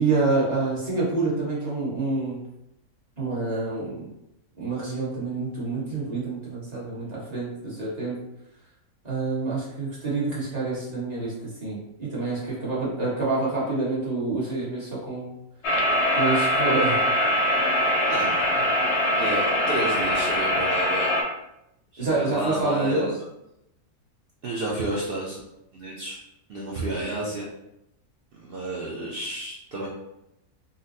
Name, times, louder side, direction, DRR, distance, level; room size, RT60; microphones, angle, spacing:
voice 1, 0.0-2.4 3.2-4.1 4.6-8.2 9.0-15.3 16.1-17.0 22.0-23.1, right 3 dB, 30° right, -8 dB, 1.2 m, -27 dB
sound 1, 15.6-21.2, equal, 60° left, 0.7 m, -23 dB
voice 2, 18.1-18.7 19.1-21.1 21.9-23.1 24.4-25.4 25.7-26.2 26.5-27.4 28.3-29.9, right 2 dB, 70° right, -5 dB, 0.5 m, -31 dB
4.0 x 2.1 x 2.6 m, 0.86 s
omnidirectional pair, 1.6 m